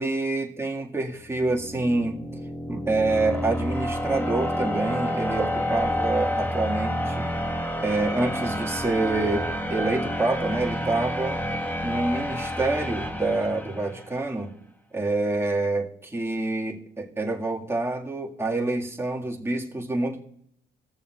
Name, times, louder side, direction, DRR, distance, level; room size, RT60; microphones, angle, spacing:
voice 1, 0.0-2.2 2.7-7.3 7.8-11.4 11.8-14.6 14.9-20.2, right 2 dB, 10° right, 0 dB, 1.8 m, -27 dB
sound 1, 1.3-14.2, equal, 10° left, 1.3 m, -29 dB
17.5 x 7.0 x 2.3 m, 0.69 s
cardioid pair, 90°, 20 cm